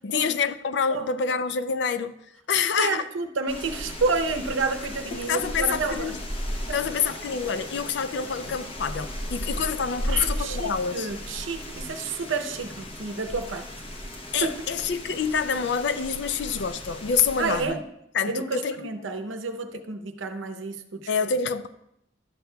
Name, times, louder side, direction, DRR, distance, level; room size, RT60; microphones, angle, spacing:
voice 1, 0.0-2.1 2.5-3.0 5.3-6.2 6.7-11.1 14.3-17.8 18.1-18.9 21.1-21.7, left 6 dB, 60° left, 0.4 m, -27 dB
voice 2, 2.8-6.1 10.1-13.7 14.4-14.6 17.4-17.8 18.3-21.1, right 4 dB, 75° right, 0.7 m, -30 dB
sound 1, 3.5-17.7, equal, 30° left, 0.8 m, -36 dB
12.0 x 8.0 x 2.2 m
head